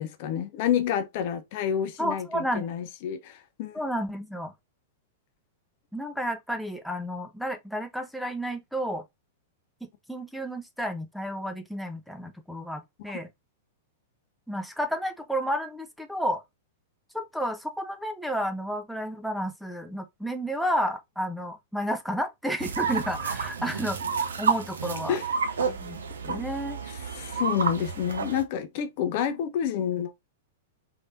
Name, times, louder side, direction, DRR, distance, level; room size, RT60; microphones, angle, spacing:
voice 1, 0.0-3.8 25.1-25.2 26.3-26.4 27.1-30.1, left 9 dB, 50° left, 0.7 m, -29 dB
voice 2, 2.0-2.7 3.7-4.5 5.9-9.0 9.8-13.3 14.5-16.4 17.1-25.2 25.7-26.8, equal, ahead, 0.6 m, -31 dB
sound 1, 22.6-28.4, right 5 dB, 75° right, 0.7 m, -30 dB
3.9 x 3.4 x 2.6 m
figure-of-eight pair, 100°, 0 cm